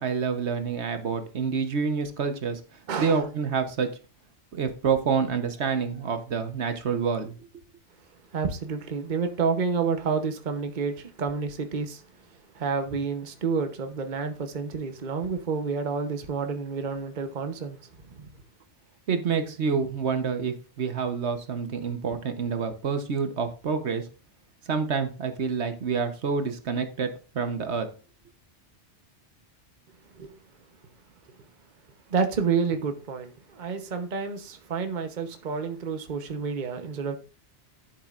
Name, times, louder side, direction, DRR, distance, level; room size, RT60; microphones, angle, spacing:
voice 1, 0.0-2.6 3.0-3.9 4.5-7.3 19.1-24.0 24.7-27.9, right 5 dB, 70° right, 1.3 m, -27 dB
voice 2, 2.9-3.2 8.3-12.0 12.5-17.8 18.1-18.3 30.2-30.3 32.1-37.2, right 5 dB, 45° right, 1.0 m, -29 dB
12.0 x 7.3 x 2.5 m
omnidirectional pair, 1.2 m